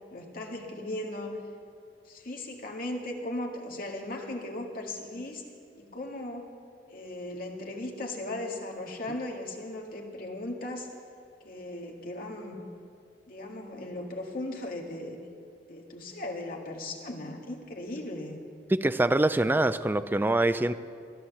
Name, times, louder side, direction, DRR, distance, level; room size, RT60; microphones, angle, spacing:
voice 1, 0.1-1.4 2.1-5.4 5.8-6.5 6.9-10.9 11.4-12.6 13.3-15.2 15.7-18.4, left 1 dB, 55° left, 1 dB, 1.8 m, -37 dB
voice 2, 18.7-20.7, right 2 dB, 10° right, 12 dB, 0.4 m, -24 dB
14.5 x 11.0 x 7.1 m, 2.4 s
head